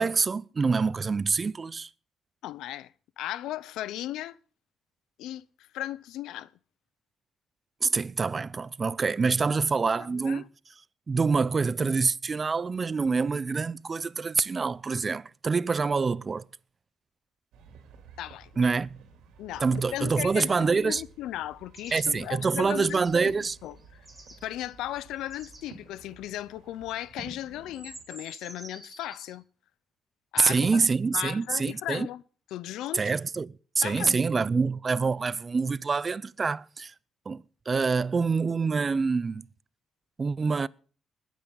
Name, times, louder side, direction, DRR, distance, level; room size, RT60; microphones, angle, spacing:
voice 1, 0.0-1.9 7.8-10.4 11.1-16.4 18.6-18.9 19.6-21.0 21.9-23.6 30.4-32.1 32.9-36.9 37.3-39.4 40.2-40.7, right 4 dB, 35° right, 0.5 m, -26 dB
voice 2, 2.4-4.4 5.2-6.5 10.0-10.5 18.2-18.6 19.4-24.1 24.4-29.4 30.3-30.8 31.1-32.2 32.5-33.1 33.8-34.2, left 13 dB, 90° left, 0.5 m, -37 dB
sound 1, 17.5-28.0, right 5 dB, 85° right, 3.1 m, -51 dB
sound 2, 21.7-22.1 22.8-23.2 23.6-25.7 27.1-27.3 27.6-29.3, right 2 dB, 5° right, 5.0 m, -49 dB
20.5 x 9.2 x 3.9 m
cardioid pair, 90°, 0 cm